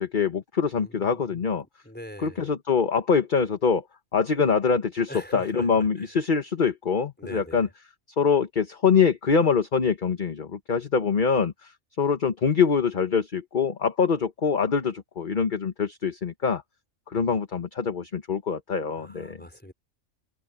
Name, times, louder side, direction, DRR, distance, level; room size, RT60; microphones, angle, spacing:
voice 1, 0.0-1.6 2.2-3.8 4.1-7.7 8.2-11.7 12.0-16.6 17.1-19.4, left 5 dB, 40° left, 1.3 m, -24 dB
voice 2, 0.8-1.5 1.8-2.4 5.1-6.1 7.2-7.7 19.0-19.7, equal, 5° left, 4.6 m, -42 dB
open air
omnidirectional pair, 1.3 m